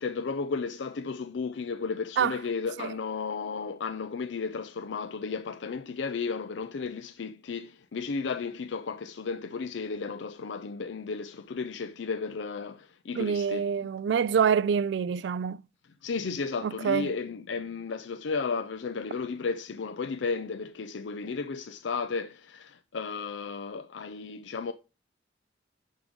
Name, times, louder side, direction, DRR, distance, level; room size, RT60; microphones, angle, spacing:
voice 1, 0.0-13.7 16.0-24.7, left 4 dB, 75° left, 0.5 m, -34 dB
voice 2, 13.2-15.6 16.6-17.1, right 7 dB, 65° right, 0.3 m, -26 dB
11.0 x 3.7 x 5.1 m
head